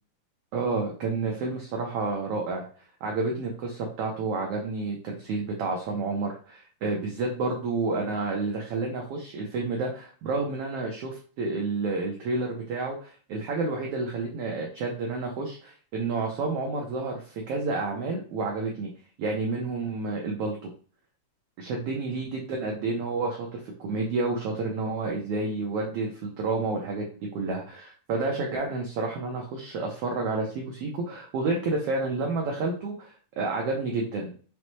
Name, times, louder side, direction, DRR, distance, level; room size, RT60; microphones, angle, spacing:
voice 1, 0.5-2.7 3.0-18.9 19.2-20.6 21.6-27.1 27.3-34.3, right 3 dB, 80° right, 0 dB, 1.3 m, -30 dB
5.4 x 2.1 x 3.0 m, 0.41 s
omnidirectional pair, 3.4 m